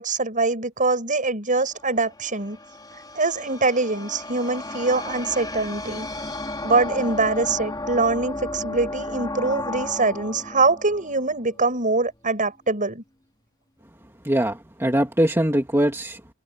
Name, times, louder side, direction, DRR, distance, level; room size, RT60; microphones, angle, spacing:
voice 1, 0.0-2.6 3.1-6.1 6.6-13.0, right 3 dB, 35° right, 7.9 m, -23 dB
sound 1, 1.7-12.0, left 2 dB, 20° left, 3.3 m, -34 dB
voice 2, 14.2-16.3, right 1 dB, 10° right, 2.2 m, -22 dB
head